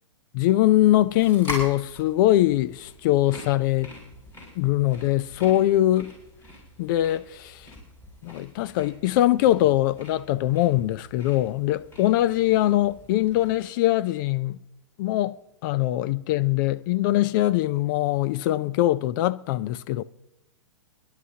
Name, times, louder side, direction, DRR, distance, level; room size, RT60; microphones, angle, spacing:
voice 1, 0.3-3.9 4.6-6.1 6.8-7.7 8.2-14.6 15.0-15.4 15.6-20.0, left 14 dB, 40° left, 0.5 m, -22 dB
sound 1, 0.7-13.6, left 1 dB, 15° left, 6.8 m, -43 dB
29.0 x 11.5 x 2.8 m
hypercardioid pair, 135°, 16 cm